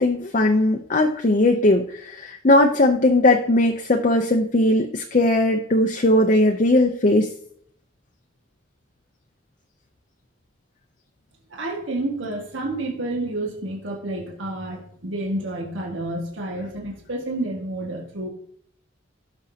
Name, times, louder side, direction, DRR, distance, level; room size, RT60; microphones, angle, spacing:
voice 1, 0.0-7.3, left 1 dB, 40° left, 3 dB, 0.6 m, -19 dB
voice 2, 11.5-18.3, right 1 dB, 75° right, 0 dB, 1.8 m, -29 dB
16.5 x 6.1 x 2.8 m, 0.65 s
head